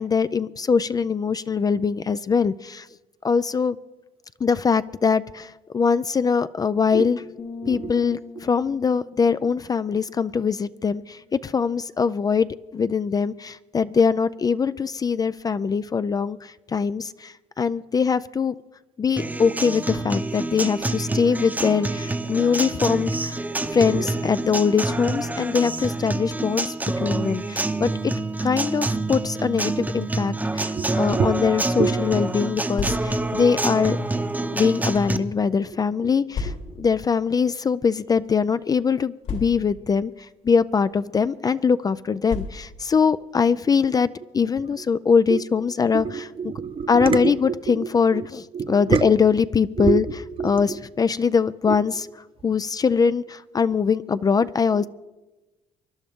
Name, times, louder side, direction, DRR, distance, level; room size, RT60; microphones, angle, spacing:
voice 1, 0.0-2.9 3.2-3.8 4.4-7.2 7.7-18.6 19.0-23.4 23.7-28.1 28.4-34.0 34.5-36.5 36.8-40.1 40.4-46.3 46.9-50.0 50.4-52.1 52.4-54.9, left 6 dB, 25° left, 0.4 m, -22 dB
sound 1, 7.4-11.1, left 4 dB, 40° left, 0.9 m, -42 dB
voice 2, 7.6-8.0 9.4-9.5 23.9-24.1 27.0-27.2 27.7-27.8 30.7-31.4 31.8-32.1 36.0-36.1 36.4-36.5 44.7-44.8 45.3-45.4 45.9-48.3 48.5-49.1 49.8-50.8 51.7-51.8 54.8-54.9, right 6 dB, 40° right, 0.9 m, -27 dB
Acoustic guitar, 19.2-35.2, right 2 dB, 10° right, 0.8 m, -27 dB
sound 2, 32.7-33.4 34.2-35.2 36.3-36.9 37.8-38.0 38.2-38.3 39.2-39.9 40.8-41.0 42.3-42.9, left 4 dB, 70° left, 3.0 m, -33 dB
24.5 x 11.0 x 3.6 m
cardioid pair, 95°, 14 cm